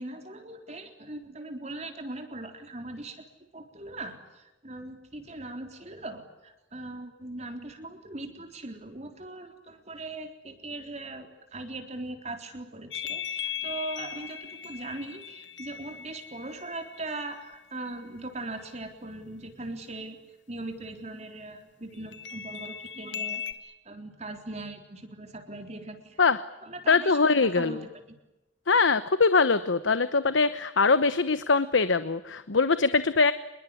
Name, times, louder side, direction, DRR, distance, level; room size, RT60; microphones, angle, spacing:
voice 1, 0.0-3.3 3.5-26.2 26.6-28.2, right 2 dB, 35° right, 5 dB, 3.9 m, -40 dB
sound 1, 12.9-17.5 22.1-23.5, left 8 dB, 75° left, 1.8 m, -38 dB
voice 2, 26.9-27.8 28.7-33.3, left 4 dB, 90° left, 13 dB, 1.0 m, -22 dB
27.0 x 22.0 x 9.7 m, 0.96 s
head